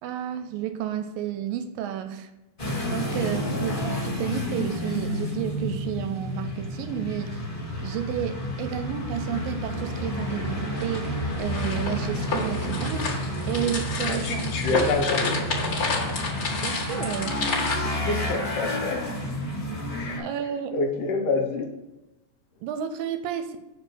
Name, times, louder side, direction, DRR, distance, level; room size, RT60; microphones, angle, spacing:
voice 1, 0.0-2.3 2.9-7.4 7.8-14.8 16.5-17.8 20.2-20.7 22.6-23.6, right 10 dB, 80° right, 8 dB, 2.2 m, -31 dB
sound 1, 2.6-20.2, left 1 dB, 20° left, 1.9 m, -30 dB
voice 2, 3.2-3.6 14.0-15.3 17.9-19.0 19.9-20.3 20.7-21.7, left 3 dB, 70° left, 2 dB, 2.2 m, -27 dB
sound 2, 10.8-17.8, left 3 dB, 40° left, 1.4 m, -30 dB
6.7 x 4.7 x 6.0 m, 0.99 s
omnidirectional pair, 4.2 m